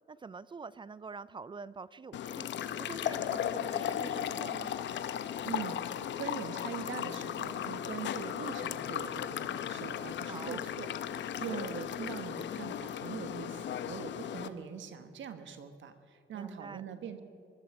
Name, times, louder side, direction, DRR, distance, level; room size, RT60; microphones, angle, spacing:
voice 1, 0.1-2.5 2.8-4.7 10.2-10.6 11.3-11.6 16.3-16.8, right 4 dB, 25° right, 18 dB, 0.4 m, -46 dB
sound 1, 2.1-14.5, left 10 dB, 65° left, 0.8 m, -36 dB
voice 2, 5.4-17.2, right 7 dB, 70° right, 9 dB, 1.3 m, -42 dB
22.0 x 13.5 x 4.8 m, 2.5 s
cardioid pair, 90°, 20 cm